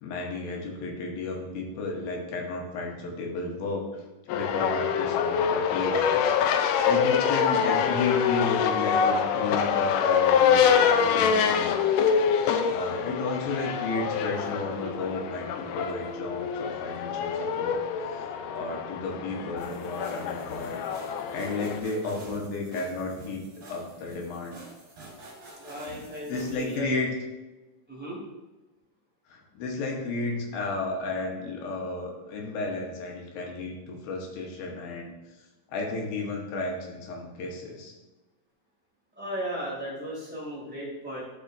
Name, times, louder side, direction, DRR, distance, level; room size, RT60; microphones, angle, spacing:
voice 1, 0.0-6.3 6.9-11.8 12.3-17.8 18.1-20.8 21.3-24.6 26.3-27.1 29.3-35.1 35.7-37.9, left 3 dB, 75° left, 0 dB, 2.7 m, -33 dB
sound 1, 4.3-21.8, left 7 dB, 90° left, 1.8 m, -25 dB
sound 2, 19.6-26.8, right 2 dB, 45° right, 3.3 m, -47 dB
voice 2, 25.6-26.9 27.9-28.2 39.1-41.2, equal, 5° right, -6 dB, 1.4 m, -36 dB
12.5 x 4.9 x 2.5 m, 1.1 s
omnidirectional pair, 4.4 m